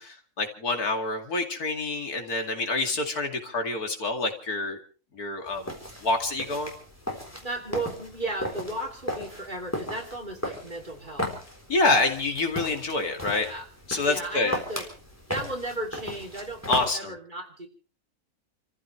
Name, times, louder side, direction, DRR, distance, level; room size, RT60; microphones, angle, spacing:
voice 1, 0.0-4.8 5.1-5.7 6.0-6.7 11.7-13.5 13.9-14.5 16.7-17.1, left 3 dB, 75° left, 4 dB, 2.9 m, -27 dB
sound 1, 5.5-16.9, left 1 dB, 10° left, 3.9 m, -36 dB
voice 2, 7.4-11.3 13.4-13.7 14.1-14.8 15.3-17.7, right 2 dB, 30° right, 1 dB, 3.0 m, -35 dB
29.0 x 15.0 x 3.2 m, 0.38 s
omnidirectional pair, 1.6 m